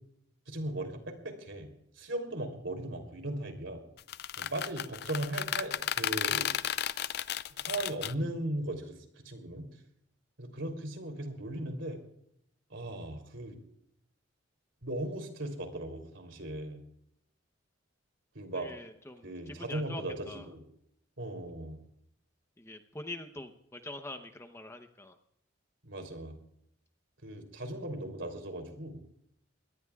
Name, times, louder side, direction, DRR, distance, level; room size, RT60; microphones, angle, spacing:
voice 1, 0.5-1.7 1.9-3.8 4.4-6.5 7.5-9.7 10.4-12.0 12.7-13.6 14.8-16.8 18.3-18.7 19.2-20.6 21.2-21.8 25.8-26.3 27.2-29.0, right 1 dB, 65° right, 5 dB, 3.2 m, -38 dB
sound 1, 4.0-8.1, left 10 dB, 50° left, 0.5 m, -33 dB
voice 2, 18.5-20.5 22.6-25.2, left 2 dB, 15° left, 7 dB, 0.8 m, -44 dB
23.5 x 18.0 x 2.4 m, 0.73 s
head